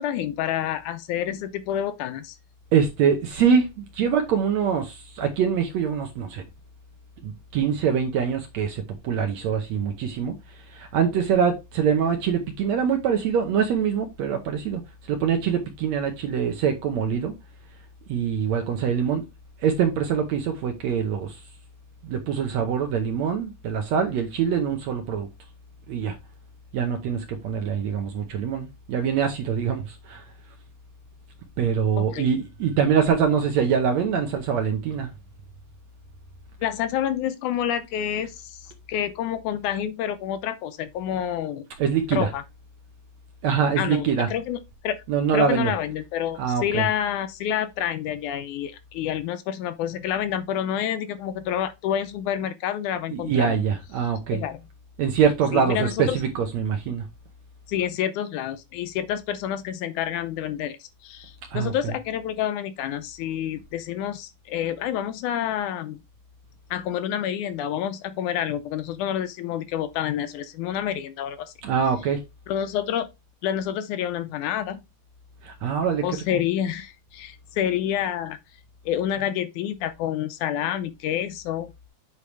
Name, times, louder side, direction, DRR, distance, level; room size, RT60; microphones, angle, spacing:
voice 1, 0.0-2.4 32.0-32.3 36.6-38.6 38.9-41.7 42.1-42.4 43.8-45.0 45.3-53.6 54.3-54.6 55.5-56.2 57.7-66.0 66.7-71.5 72.5-73.1 73.4-74.8 76.0-78.4 78.9-81.7, left 10 dB, 75° left, 2.0 m, -28 dB
voice 2, 2.7-6.4 7.2-14.8 15.1-17.3 18.1-19.2 19.6-21.4 22.0-25.3 25.9-26.2 26.7-30.2 31.6-35.1 41.8-42.3 43.4-44.3 45.1-45.7 46.4-46.8 53.1-54.4 55.0-57.0 61.5-61.9 71.6-72.2 75.4-76.4, right 7 dB, 65° right, 2.0 m, -24 dB
8.4 x 4.8 x 3.4 m
omnidirectional pair, 3.9 m